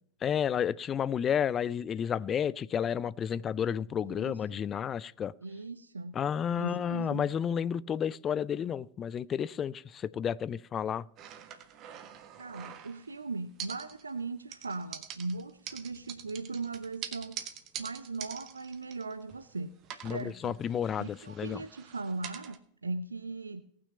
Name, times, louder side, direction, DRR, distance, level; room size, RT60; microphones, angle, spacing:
voice 1, 0.2-5.3 6.1-11.1 20.0-21.6, left 8 dB, 25° left, 0.4 m, -31 dB
voice 2, 4.0-4.6 5.4-6.1 6.6-7.3 12.4-17.4 17.8-19.7 20.1-20.5 21.0-23.6, right 3 dB, 75° right, 0.6 m, -39 dB
sound 1, 11.2-13.2 13.6-14.2 14.5-19.5 19.8-22.6, right 9 dB, 35° right, 1.2 m, -45 dB
18.0 x 6.3 x 5.4 m
figure-of-eight pair, 90°, 0 cm